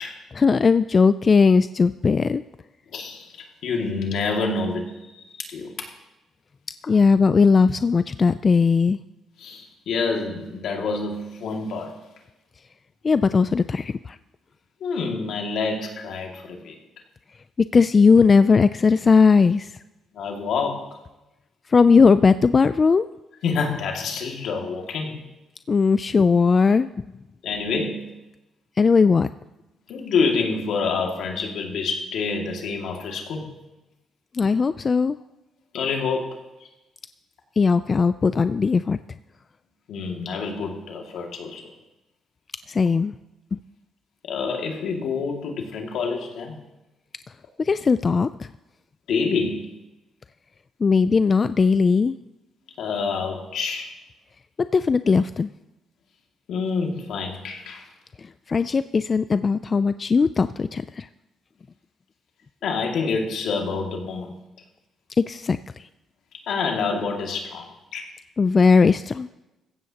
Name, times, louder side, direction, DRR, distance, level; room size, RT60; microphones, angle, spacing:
voice 1, 0.4-2.4 6.9-9.0 13.0-14.2 17.7-19.7 21.7-23.1 25.7-26.9 28.8-29.3 34.3-35.2 37.6-39.0 42.7-43.1 43.5-43.6 47.6-48.5 50.8-52.1 54.6-55.5 58.2-61.1 65.2-65.6 68.4-69.3, left 5 dB, 35° left, 13 dB, 0.3 m, -18 dB
voice 2, 2.9-5.7 9.4-12.0 14.8-16.8 20.1-21.0 23.4-25.2 27.4-28.1 29.9-33.5 35.7-36.4 39.9-41.7 44.2-46.6 49.1-49.7 52.8-53.9 56.5-57.9 62.6-64.3 66.5-68.1, left 4 dB, 75° left, 1 dB, 2.2 m, -27 dB
16.0 x 15.0 x 2.9 m, 1.0 s
cardioid pair, 90°, 0 cm